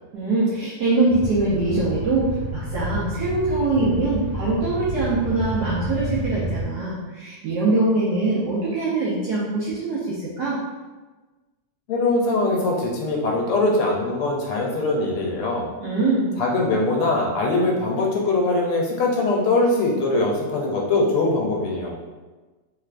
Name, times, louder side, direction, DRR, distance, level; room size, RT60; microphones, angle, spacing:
voice 1, 0.1-10.6 15.8-16.3, right 2 dB, 70° right, -8 dB, 1.0 m, -23 dB
sound 1, 1.1-6.6, right 1 dB, 60° left, 1.2 m, -30 dB
voice 2, 11.9-15.7 16.4-21.9, left 2 dB, 85° left, -1 dB, 1.6 m, -22 dB
3.5 x 3.2 x 2.5 m, 1.3 s
omnidirectional pair, 2.4 m